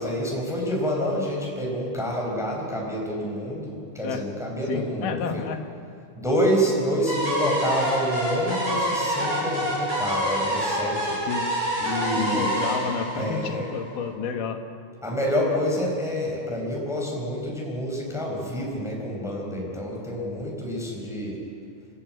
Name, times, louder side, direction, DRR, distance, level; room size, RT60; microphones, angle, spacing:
voice 1, 0.0-5.4 6.1-11.2 11.8-12.6 13.1-13.7 15.0-21.4, equal, ahead, -2 dB, 4.7 m, -28 dB
voice 2, 4.7-5.6 11.3-11.5 12.1-14.6, left 6 dB, 85° left, 5 dB, 3.1 m, -30 dB
sound 1, 7.1-14.0, equal, 25° right, 7.6 m, -27 dB
30.0 x 13.5 x 9.0 m, 2.4 s
omnidirectional pair, 3.7 m